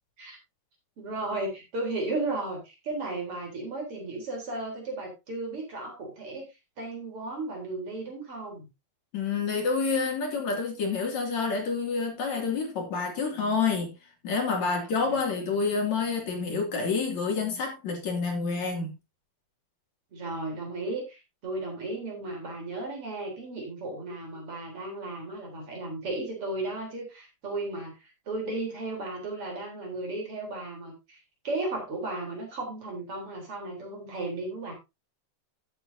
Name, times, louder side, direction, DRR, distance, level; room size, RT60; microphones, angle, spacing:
voice 1, 1.0-6.5 6.8-8.7 15.1-15.2 20.1-31.2 31.4-34.7, right 2 dB, 35° right, 4.2 m, -35 dB
voice 2, 9.1-14.0 14.2-18.9, left 4 dB, 45° left, 3.5 m, -28 dB
13.5 x 8.9 x 2.7 m
omnidirectional pair, 5.0 m